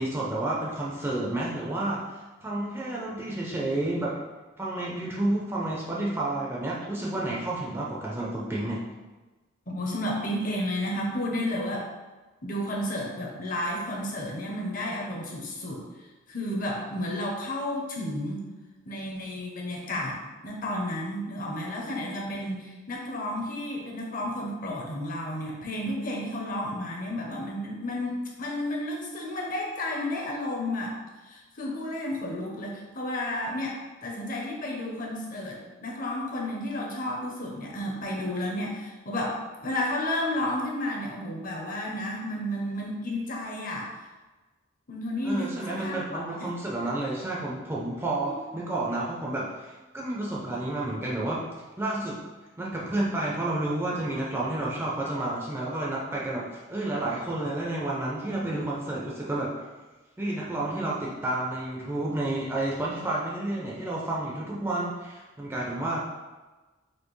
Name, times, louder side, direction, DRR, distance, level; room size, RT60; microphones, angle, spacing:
voice 1, 0.0-4.2 4.6-8.8 45.2-51.4 51.8-52.2 52.6-59.6 60.2-66.0, right 2 dB, 10° right, -5 dB, 0.5 m, -30 dB
voice 2, 9.7-11.9 12.4-15.8 16.3-18.4 18.9-30.9 31.2-43.9 44.9-46.5 48.2-48.3, left 1 dB, 40° left, -1 dB, 0.7 m, -32 dB
4.3 x 2.8 x 3.1 m, 1.2 s
head